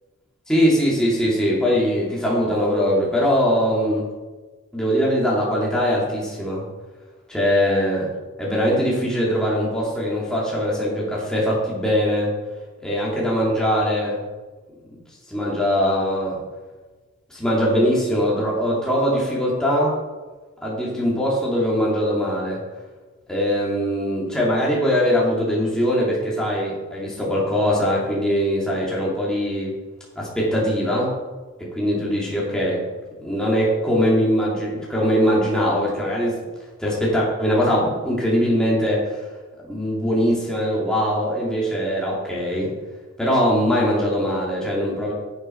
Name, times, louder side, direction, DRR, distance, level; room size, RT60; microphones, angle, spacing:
voice 1, 0.5-4.1 4.7-6.6 7.3-8.1 8.4-12.3 12.8-14.2 14.9-15.0 15.3-16.3 17.3-20.0 20.6-22.6 23.3-29.8 30.2-31.1 31.8-32.8 33.2-36.4 36.8-39.2 39.7-42.7 43.2-45.1, equal, 5° left, -6 dB, 2.5 m, -21 dB
10.5 x 7.0 x 4.5 m, 1.3 s
head